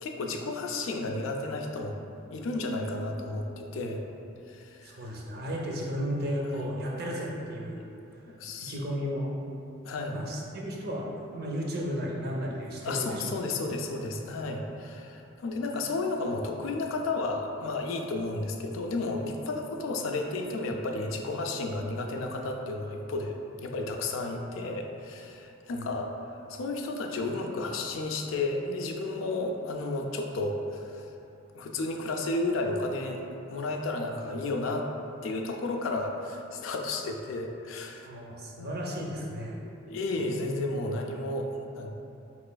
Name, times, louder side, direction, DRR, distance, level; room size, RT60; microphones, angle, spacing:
voice 1, 0.0-2.0 2.3-4.0 4.5-5.1 6.5-6.7 8.3-8.8 9.9-10.2 12.8-31.1 31.5-33.2 33.5-34.9 35.2-38.1 38.6-38.7 39.6-41.9, left 2 dB, 80° left, 3 dB, 0.4 m, -32 dB
voice 2, 4.8-7.9 8.6-9.3 10.1-11.1 11.3-13.6 25.7-25.9 38.1-39.6, equal, 50° right, -2 dB, 0.5 m, -34 dB
4.0 x 3.0 x 2.2 m, 2.7 s
head